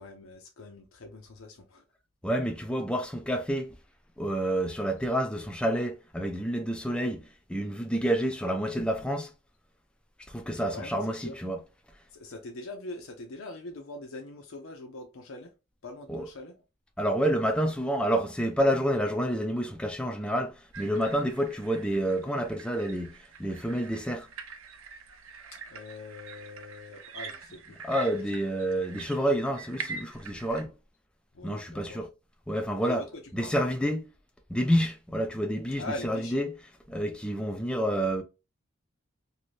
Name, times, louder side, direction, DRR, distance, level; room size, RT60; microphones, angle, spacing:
voice 1, 0.0-1.8 10.6-11.4 12.1-15.5 15.8-16.5 25.5-27.8 28.1-28.2 31.3-32.0 32.8-33.5 35.8-36.4, left 2 dB, 80° left, 0.6 m, -42 dB
voice 2, 2.2-3.8 4.2-9.3 10.3-11.6 16.1-16.3 17.0-24.3 27.8-30.7 31.4-32.1 32.5-33.0 33.3-34.1 34.5-36.5 36.9-38.2, equal, 5° left, 0.3 m, -29 dB
sound 1, 20.7-30.6, right 5 dB, 85° right, 0.6 m, -45 dB
2.7 x 2.6 x 3.1 m
head